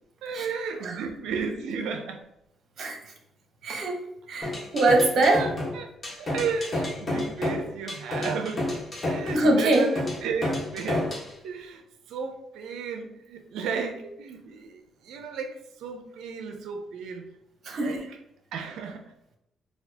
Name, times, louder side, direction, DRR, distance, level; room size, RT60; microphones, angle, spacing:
voice 1, 0.2-2.2 5.3-5.9 6.2-8.7 9.1-11.2 11.4-11.8 12.1-17.3 17.7-18.0 18.5-19.1, right 5 dB, 85° right, 6 dB, 0.4 m, -34 dB
voice 2, 2.8-3.1 3.6-5.5 9.2-9.9 17.6-18.1, right 2 dB, 60° right, 2 dB, 0.9 m, -24 dB
sound 1, 4.4-11.3, left 1 dB, 30° left, 1.2 m, -30 dB
4.1 x 2.3 x 2.8 m, 0.80 s
cardioid pair, 90°, 0 cm